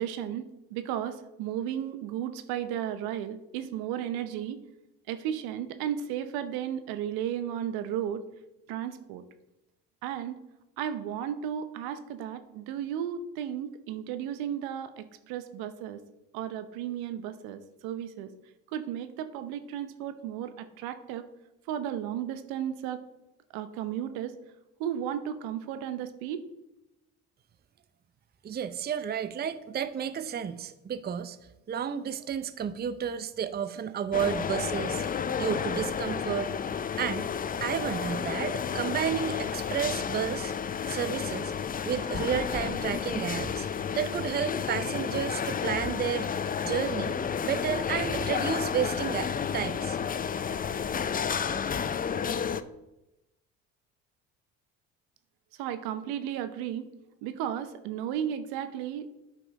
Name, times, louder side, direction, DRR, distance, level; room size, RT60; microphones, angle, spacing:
voice 1, 0.0-4.6 5.1-8.2 8.7-9.2 10.0-10.4 10.8-16.0 16.3-18.3 18.7-21.3 21.7-23.0 23.5-24.3 24.8-26.5 55.6-56.9 57.2-59.1, right 10 dB, 75° right, 11 dB, 0.8 m, -34 dB
voice 2, 28.4-31.4 31.7-36.5 37.0-37.3 37.6-40.5 40.9-41.5 41.8-43.7 44.0-47.2 47.4-50.0, right 8 dB, 25° right, 13 dB, 0.6 m, -32 dB
sound 1, 34.1-52.6, left 7 dB, 25° left, 0.5 m, -31 dB
9.7 x 5.5 x 4.1 m, 0.94 s
hypercardioid pair, 65°, 37 cm